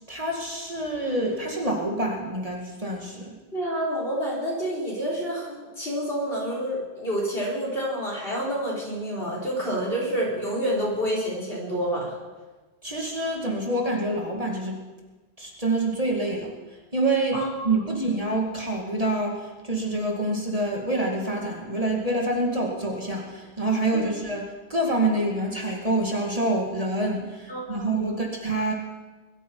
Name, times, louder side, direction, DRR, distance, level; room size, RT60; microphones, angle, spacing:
voice 1, 0.1-3.4 12.8-14.8 15.4-16.5 16.9-28.7, right 2 dB, 35° right, -1 dB, 2.3 m, -27 dB
voice 2, 3.5-12.1 17.3-17.5 23.9-24.0 27.5-28.2, equal, 60° left, -5 dB, 5.2 m, -28 dB
21.0 x 13.5 x 4.7 m, 1.3 s
omnidirectional pair, 1.1 m